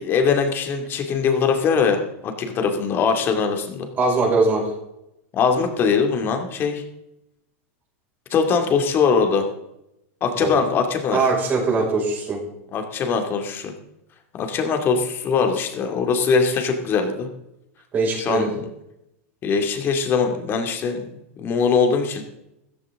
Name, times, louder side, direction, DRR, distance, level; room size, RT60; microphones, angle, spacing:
voice 1, 0.0-3.9 5.3-6.8 8.3-9.5 10.2-11.2 12.7-13.7 14.4-17.3 18.2-18.6 19.4-21.1 21.4-22.2, left 5 dB, 30° left, 4 dB, 2.4 m, -21 dB
voice 2, 4.0-4.7 10.4-10.6 11.1-12.4 17.9-18.5, right 3 dB, 25° right, -2 dB, 5.4 m, -21 dB
14.5 x 14.5 x 3.7 m, 0.86 s
supercardioid pair, 150°, 8 cm